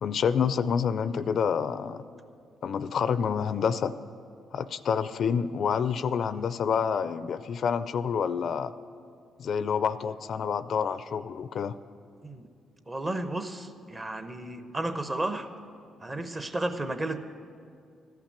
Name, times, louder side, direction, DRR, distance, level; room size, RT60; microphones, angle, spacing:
voice 1, 0.0-2.0 2.6-3.9 4.5-8.7 9.4-11.8, left 7 dB, 60° left, 14 dB, 0.3 m, -28 dB
voice 2, 12.9-15.5 16.0-17.2, right 2 dB, 25° right, 9 dB, 0.8 m, -33 dB
13.5 x 5.9 x 8.7 m, 2.3 s
cardioid pair, 90°, 0 cm